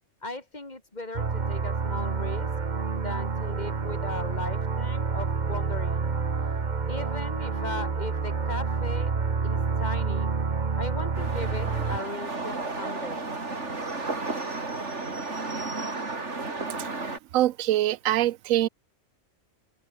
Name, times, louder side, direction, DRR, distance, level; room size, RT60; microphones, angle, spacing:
voice 1, 0.2-2.5 2.9-6.0 6.9-9.2 9.4-10.3 10.8-13.2, left 2 dB, 30° left, 2.9 m, -37 dB
sound 1, 1.1-12.0, right 5 dB, 35° right, 1.3 m, -28 dB
sound 2, 11.1-17.2, right 3 dB, 60° right, 3.5 m, -33 dB
voice 2, 17.3-18.7, right 14 dB, 85° right, 1.0 m, -24 dB
omnidirectional pair, 1.4 m